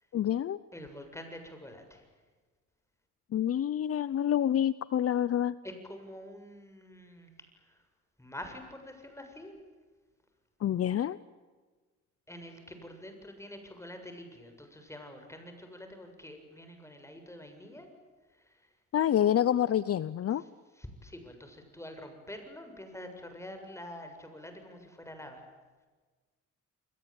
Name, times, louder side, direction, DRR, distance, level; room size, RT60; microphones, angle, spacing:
voice 1, 0.1-0.6 3.3-5.5 10.6-11.2 18.9-20.4, left 10 dB, 50° left, 17 dB, 0.8 m, -27 dB
voice 2, 0.7-2.1 5.6-7.8 8.2-9.6 12.3-17.9 18.3-18.7 20.4-20.5 20.8-25.4, left 1 dB, 10° left, 6 dB, 7.3 m, -46 dB
29.5 x 22.0 x 9.0 m, 1.4 s
cardioid pair, 90°, 30 cm